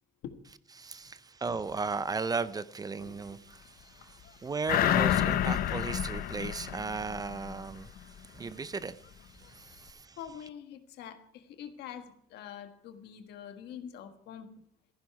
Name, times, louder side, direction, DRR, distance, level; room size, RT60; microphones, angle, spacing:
voice 1, 0.8-10.2, right 4 dB, 20° right, 0.5 m, -36 dB
voice 2, 3.0-3.4 3.6-4.5 9.4-14.6, left 9 dB, 80° left, 1.5 m, -46 dB
sound 1, 4.7-7.6 8.0-8.1, left 11 dB, 60° left, 0.6 m, -29 dB
sound 2, 4.8-7.4, left 5 dB, 40° left, 2.4 m, -48 dB
14.5 x 10.5 x 4.7 m
cardioid pair, 110°, 17 cm